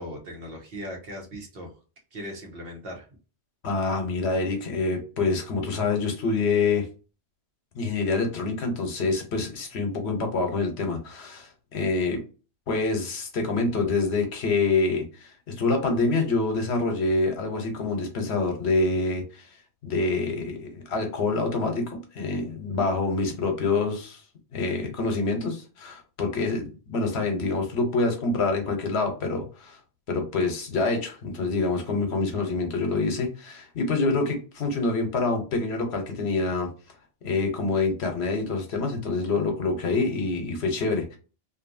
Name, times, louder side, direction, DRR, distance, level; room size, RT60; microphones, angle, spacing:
voice 1, 0.0-1.8 2.1-3.1, equal, 60° right, 1 dB, 1.0 m, -38 dB
voice 2, 3.6-6.9 7.7-12.2 12.7-19.4 19.8-24.2 24.5-29.8 30.1-36.7 37.2-41.2, left 3 dB, 70° left, 4 dB, 1.0 m, -26 dB
2.6 x 2.6 x 2.5 m, 0.35 s
omnidirectional pair, 1.2 m